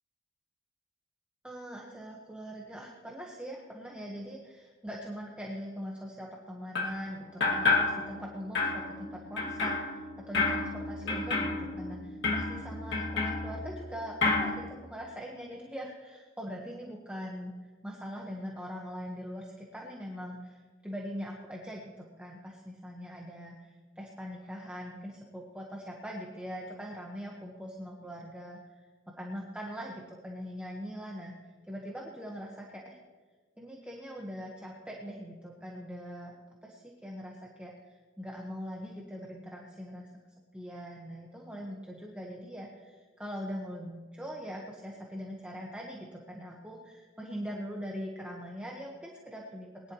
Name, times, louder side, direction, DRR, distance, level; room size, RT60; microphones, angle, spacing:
voice 1, 1.4-17.5 17.8-28.9 29.1-33.0 33.6-40.1 40.5-49.9, equal, 5° right, -2 dB, 1.4 m, -42 dB
sound 1, 6.7-7.0 7.4-8.3 8.5-13.9 14.2-14.6, left 3 dB, 65° left, 2.4 m, -30 dB
21.0 x 11.5 x 3.2 m, 1.4 s
head